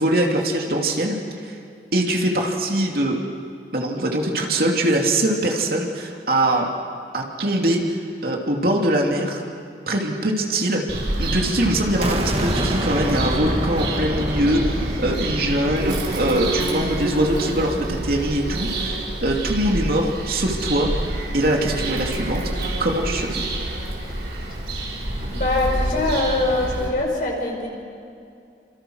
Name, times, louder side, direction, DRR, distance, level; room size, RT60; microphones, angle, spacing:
voice 1, 0.0-1.6 1.9-3.2 3.7-6.7 7.1-9.4 9.9-10.8 11.2-20.9 21.3-22.4 22.8-23.4, right 1 dB, 55° right, 0 dB, 2.9 m, -22 dB
Bird vocalization bird call bird song, 10.9-26.9, right 1 dB, 75° right, 5.7 m, -28 dB
sound 1, 12.0-17.8, right 1 dB, 35° right, 2.5 m, -27 dB
voice 2, 25.3-27.7, left 2 dB, 50° left, -1 dB, 5.5 m, -23 dB
29.0 x 27.0 x 6.5 m, 2.4 s
head